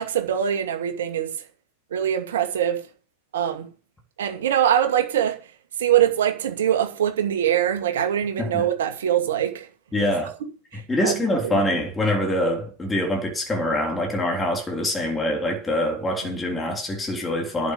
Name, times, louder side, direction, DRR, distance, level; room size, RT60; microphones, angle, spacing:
voice 1, 0.0-1.3 1.9-2.8 3.3-3.7 4.2-5.4 5.8-9.7 10.7-11.1 11.4-11.6, right 10 dB, 60° right, 2.2 m, -23 dB
voice 2, 9.9-10.3 10.9-17.7, left 1 dB, 15° left, 3.5 m, -24 dB
11.0 x 6.9 x 8.7 m
figure-of-eight pair, 90°, 0 cm